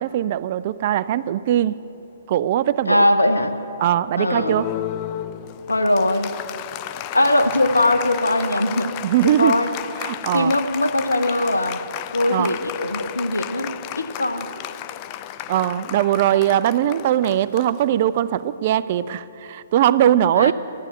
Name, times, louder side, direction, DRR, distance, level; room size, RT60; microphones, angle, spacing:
voice 1, 0.0-1.8 2.3-3.1 3.8-4.7 9.0-9.6 10.0-10.5 12.3-12.5 15.5-20.5, right 11 dB, 45° right, 17 dB, 0.4 m, -20 dB
voice 2, 2.9-3.6 4.2-4.6 5.7-6.3 7.1-8.9 9.2-9.7 10.3-11.8 12.1-14.5 20.3-20.5, left 1 dB, 85° left, 8 dB, 0.9 m, -20 dB
Applause, 4.3-18.3, left 13 dB, 35° left, 0.4 m, -33 dB
14.0 x 10.5 x 7.8 m, 3.0 s
figure-of-eight pair, 125°, 0 cm